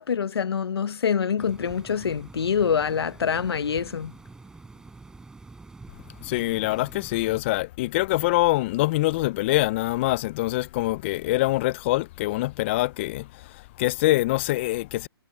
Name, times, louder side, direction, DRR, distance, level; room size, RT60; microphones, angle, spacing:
voice 1, 0.0-4.1, left 7 dB, 70° left, 1.2 m, -25 dB
sound 1, 1.4-7.4, right 3 dB, 5° right, 4.3 m, -46 dB
voice 2, 6.2-15.1, left 18 dB, 30° left, 0.6 m, -24 dB
hypercardioid pair, 145°, 14 cm